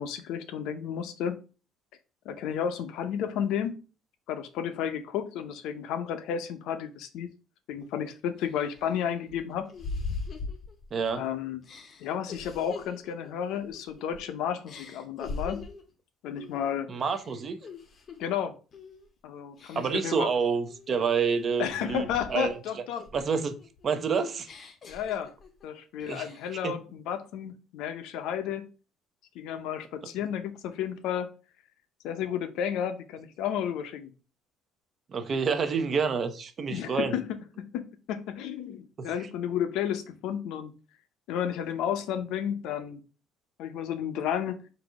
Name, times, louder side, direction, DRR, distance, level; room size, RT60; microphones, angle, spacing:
voice 1, 0.0-1.4 2.2-3.8 4.3-7.3 7.7-9.7 11.2-11.6 12.0-15.7 16.2-16.9 18.2-18.6 19.2-20.3 21.6-23.0 24.8-25.3 25.6-28.7 29.3-31.3 32.0-34.1 36.7-40.7 41.3-43.0 43.6-44.6, left 9 dB, 70° left, 0.6 m, -32 dB
sound 1, 7.8-7.9 8.4-11.1 11.6-14.3 14.7-15.9 16.4-16.7 17.0-18.3 18.7-19.1 19.6-20.2 20.7-22.6 23.0-25.6 26.0-26.6, left 4 dB, 30° left, 0.7 m, -42 dB
voice 2, 10.9-11.2 16.9-17.6 19.8-22.0 22.3-22.5 23.1-23.6 23.8-24.5 26.1-26.3 26.6-26.7 35.1-37.2 39.0-39.1, right 5 dB, 30° right, 0.5 m, -28 dB
3.9 x 2.7 x 4.8 m
cardioid pair, 175°, 0 cm